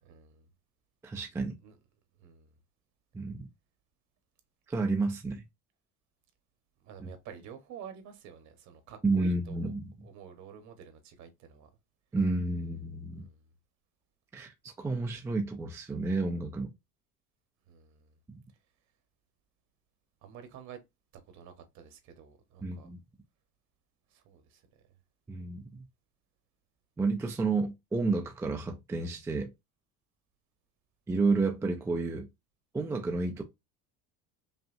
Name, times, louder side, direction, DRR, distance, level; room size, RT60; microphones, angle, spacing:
voice 1, 0.0-0.5 1.6-1.8 2.2-2.5 6.8-9.7 10.0-11.7 13.2-13.4 17.7-18.1 20.2-20.8 21.3-22.9 24.1-24.6, right 8 dB, 50° right, 1.2 m, -50 dB
voice 2, 1.0-1.6 3.1-3.5 4.7-5.4 7.0-7.1 9.0-9.9 12.1-13.3 14.3-16.7 22.6-23.0 25.3-25.8 27.0-29.5 31.1-32.3 32.7-33.4, right 3 dB, 10° right, 0.4 m, -31 dB
5.5 x 2.3 x 2.6 m
cardioid pair, 145°, 35 cm